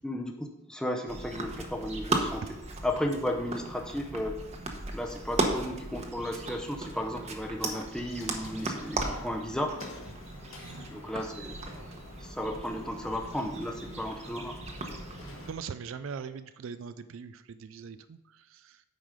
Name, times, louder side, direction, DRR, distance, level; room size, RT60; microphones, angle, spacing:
voice 1, 0.0-2.4 2.8-4.4 4.9-9.7 10.9-11.5 12.2-14.6, left 1 dB, 5° left, 2 dB, 0.7 m, -34 dB
sound 1, 1.1-15.5, right 2 dB, 35° right, 1.0 m, -37 dB
sound 2, 8.1-15.5, left 2 dB, 80° left, 1.6 m, -49 dB
voice 2, 15.5-18.8, right 6 dB, 70° right, 12 dB, 0.4 m, -41 dB
9.0 x 4.9 x 5.1 m, 0.95 s
head